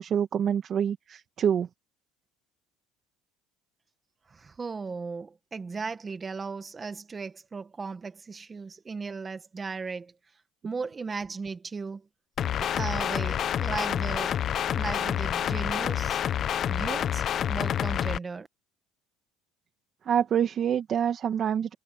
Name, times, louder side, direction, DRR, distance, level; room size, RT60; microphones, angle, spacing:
voice 1, 0.0-1.7 20.1-21.7, right 8 dB, 45° right, 2.0 m, -26 dB
voice 2, 4.6-10.1 10.6-12.0 12.7-14.3 14.7-16.2 16.7-18.5, right 4 dB, 25° right, 1.6 m, -36 dB
sound 1, 12.4-18.2, left 10 dB, 45° left, 1.0 m, -28 dB
supercardioid pair, 100°, 0 cm